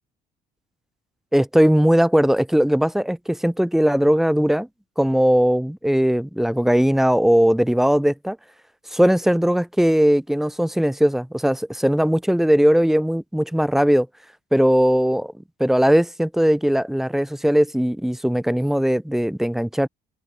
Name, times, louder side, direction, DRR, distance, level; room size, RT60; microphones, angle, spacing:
voice 1, 1.3-4.7 5.0-8.4 8.9-14.1 14.5-15.3 15.6-19.9, equal, ahead, 2.5 m, -19 dB
open air
cardioid pair, 110°, 17 cm